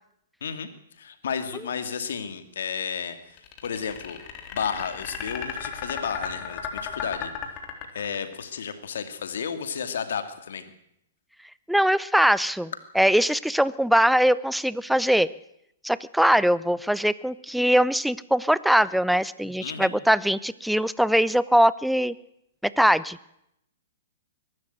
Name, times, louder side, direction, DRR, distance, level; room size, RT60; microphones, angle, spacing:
voice 1, 0.4-4.2 4.5-7.5 7.9-10.6 19.6-19.9, left 7 dB, 70° left, 9 dB, 2.5 m, -32 dB
sound 1, 3.4-8.4, left 8 dB, 35° left, 3.6 m, -35 dB
voice 2, 11.7-15.3 15.8-22.1 22.6-23.2, equal, ahead, 18 dB, 0.7 m, -21 dB
22.5 x 12.5 x 9.3 m, 0.80 s
hypercardioid pair, 120°, 0 cm